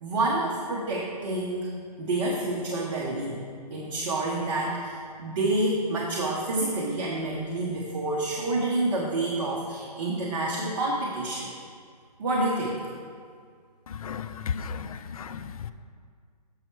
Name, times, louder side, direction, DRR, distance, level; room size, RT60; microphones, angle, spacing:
voice 1, 0.0-1.7 2.0-3.4 3.7-11.5 12.2-12.8, right 2 dB, 50° right, -3 dB, 1.1 m, -28 dB
voice 2, 14.0-15.4, left 6 dB, 60° left, 11 dB, 0.5 m, -34 dB
7.6 x 5.7 x 4.6 m, 2.1 s
hypercardioid pair, 160°, 21 cm